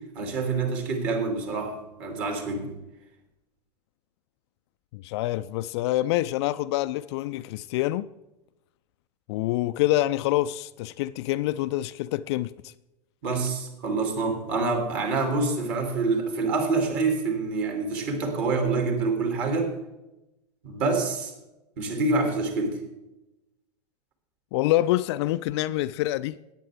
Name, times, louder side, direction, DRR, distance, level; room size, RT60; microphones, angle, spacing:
voice 1, 0.1-2.7 13.2-19.8 20.6-21.3 21.8-22.8, right 3 dB, 45° right, 3.2 m, -26 dB
voice 2, 4.9-8.1 9.3-12.7 24.5-26.4, left 16 dB, 40° left, 0.4 m, -26 dB
17.5 x 9.1 x 3.7 m
figure-of-eight pair, 90°, 21 cm